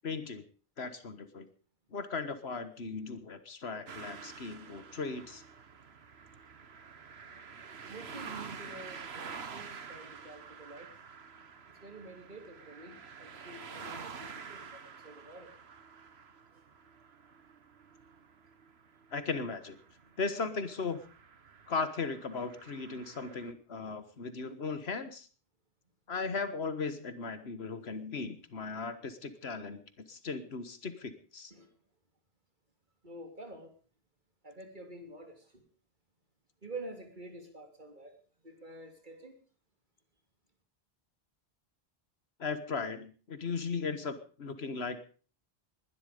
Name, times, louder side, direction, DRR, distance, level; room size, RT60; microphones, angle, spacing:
voice 1, 0.0-0.4 0.8-1.5 1.9-5.4 19.1-19.8 20.2-21.0 21.7-25.3 26.1-29.8 30.1-31.5 42.4-45.0, left 4 dB, 85° left, 12 dB, 1.7 m, -37 dB
sound 1, 3.9-23.5, right 6 dB, 80° right, 1.5 m, -49 dB
voice 2, 7.9-11.0 11.7-15.5 16.5-16.6 31.5-31.7 33.0-33.8 34.4-35.6 36.6-38.2 38.4-39.4, right 2 dB, 50° right, 5 dB, 3.5 m, -48 dB
20.5 x 12.0 x 5.2 m, 0.39 s
omnidirectional pair, 1.0 m